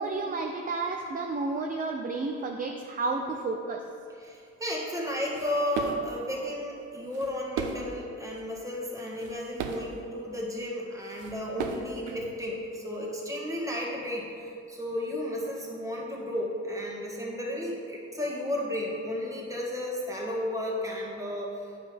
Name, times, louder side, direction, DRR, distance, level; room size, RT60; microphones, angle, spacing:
voice 1, 0.0-3.8, right 3 dB, 30° right, 2 dB, 0.5 m, -31 dB
voice 2, 4.2-21.7, left 1 dB, 10° right, -3 dB, 1.7 m, -33 dB
sound 1, 5.0-6.2 6.8-8.0 8.4-8.5 9.0-10.0 10.8-10.9 11.1-12.8, right 5 dB, 85° right, 0.7 m, -37 dB
9.6 x 5.4 x 3.5 m, 2.5 s
cardioid pair, 90°, 30 cm